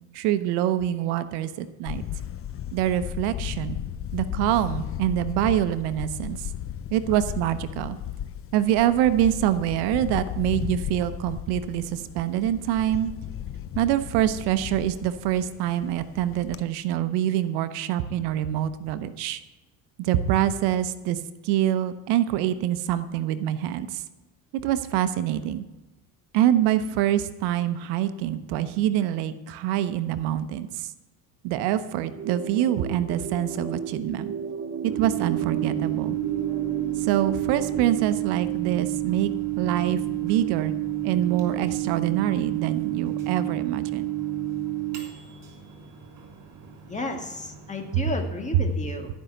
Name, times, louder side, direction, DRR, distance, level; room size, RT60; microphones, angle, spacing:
voice 1, 0.1-2.0 2.7-3.8 4.1-6.4 6.9-8.0 8.5-13.1 13.8-19.4 20.0-24.0 24.5-25.6 26.3-30.9 31.4-34.3 34.8-36.2 37.0-40.7 41.0-44.1 47.9-48.0, right 11 dB, 80° right, 12 dB, 0.8 m, -25 dB
Camera, 1.9-16.6, left 10 dB, 35° left, 0.5 m, -35 dB
sound 1, 32.1-38.1, right 4 dB, 30° right, 1.4 m, -35 dB
Microwave oven, 34.9-48.3, right 15 dB, 55° right, 3.1 m, -30 dB
voice 2, 46.9-49.1, left 2 dB, 20° left, 3 dB, 1.9 m, -32 dB
13.5 x 5.6 x 7.8 m, 1.1 s
cardioid pair, 100°, 39 cm